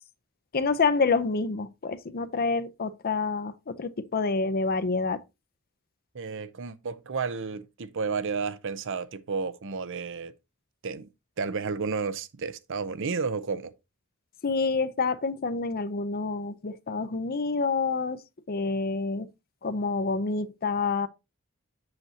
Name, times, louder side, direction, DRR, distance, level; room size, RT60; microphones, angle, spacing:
voice 1, 0.5-5.2 14.4-18.2 18.5-19.3 19.6-21.1, left 4 dB, 45° left, 0.6 m, -27 dB
voice 2, 6.1-10.3 10.8-11.1 11.4-13.7, right 5 dB, 60° right, 0.7 m, -32 dB
7.7 x 7.7 x 2.8 m
head